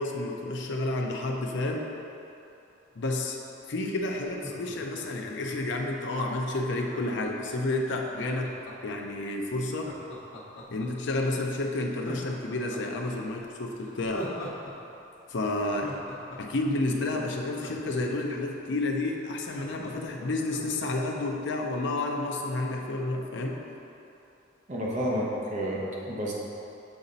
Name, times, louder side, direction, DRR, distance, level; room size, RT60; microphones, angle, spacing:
voice 1, 0.0-1.9 3.0-3.4 3.7-8.5 8.8-9.9 10.7-14.3 15.3-15.9 16.4-23.6, left 2 dB, 70° left, 1 dB, 0.6 m, -30 dB
Laughter, 4.2-5.9 6.8-9.0 9.7-11.1 11.5-11.6 11.9-14.7 15.0-15.1 15.5-18.4 18.8-18.9 19.1-20.9 21.2-21.3, equal, 85° left, 0.9 m, -43 dB
voice 2, 24.7-26.3, equal, 40° right, -4 dB, 1.0 m, -30 dB
7.0 x 4.0 x 4.0 m, 2.9 s
head